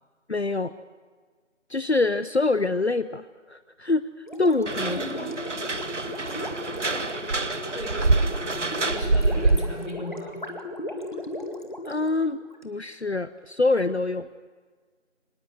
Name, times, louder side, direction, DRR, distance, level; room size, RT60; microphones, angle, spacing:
voice 1, 0.3-0.7 1.7-5.0 11.9-14.3, left 3 dB, 60° left, 14 dB, 0.7 m, -25 dB
Gurgling, 4.2-12.6, left 1 dB, 40° left, 2.0 m, -36 dB
sound 1, 4.7-9.9, right 3 dB, 70° right, 1.0 m, -26 dB
voice 2, 4.8-5.5 6.2-6.6 7.7-8.1 8.3-10.5, equal, 80° left, 4 dB, 6.0 m, -38 dB
25.0 x 20.0 x 8.0 m, 1.5 s
figure-of-eight pair, 175°, 37 cm